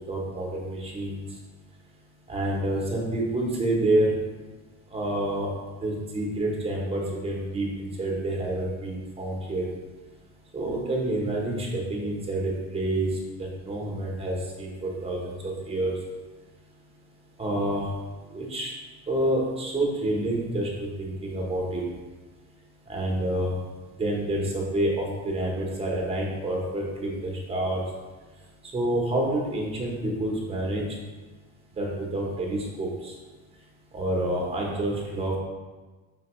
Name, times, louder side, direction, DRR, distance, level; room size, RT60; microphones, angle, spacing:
voice 1, 0.1-1.2 2.3-4.1 4.9-5.5 5.8-9.7 10.5-16.0 17.4-17.9 18.3-18.7 19.1-21.8 22.9-23.5 24.0-27.8 28.7-30.8 31.8-33.1 33.9-35.4, right 1 dB, 15° right, -2 dB, 0.9 m, -28 dB
5.2 x 2.8 x 3.0 m, 1.3 s
cardioid pair, 130°, 34 cm